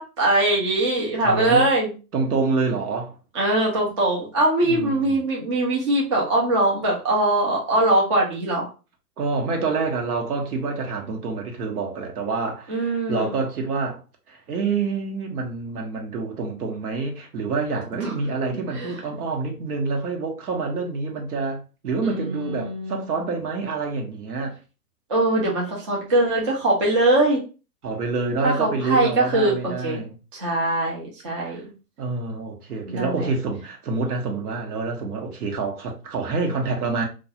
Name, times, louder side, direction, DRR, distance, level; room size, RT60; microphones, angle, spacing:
voice 1, 0.0-1.9 3.3-8.7 12.7-13.3 18.0-18.1 18.7-18.9 22.0-23.1 25.1-27.4 28.4-30.0 30.3-31.6 32.9-33.3, right 2 dB, 20° right, 0.3 m, -22 dB
voice 2, 1.2-1.7 2.1-3.1 4.6-5.0 9.2-14.0 14.3-24.5 27.8-30.1 31.4-31.6 32.0-37.0, right 4 dB, 70° right, 1.0 m, -27 dB
2.3 x 2.3 x 2.8 m
hypercardioid pair, 125°, 47 cm